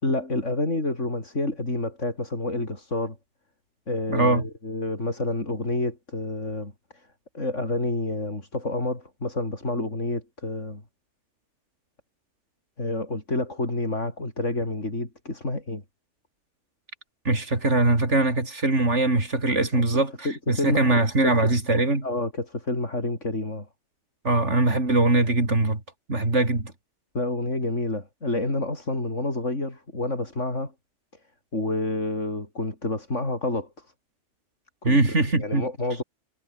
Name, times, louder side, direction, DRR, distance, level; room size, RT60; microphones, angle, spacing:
voice 1, 0.0-3.2 3.9-7.1 7.3-10.8 12.8-15.8 19.7-19.8 20.2-21.3 22.0-23.7 27.1-30.7 31.5-33.9 34.8-35.0 35.3-36.0, left 2 dB, 90° left, 5.9 m, -29 dB
voice 2, 4.1-4.4 17.2-22.1 24.2-25.8 26.1-26.7 34.8-35.7, right 2 dB, 75° right, 4.9 m, -22 dB
omnidirectional pair, 1.2 m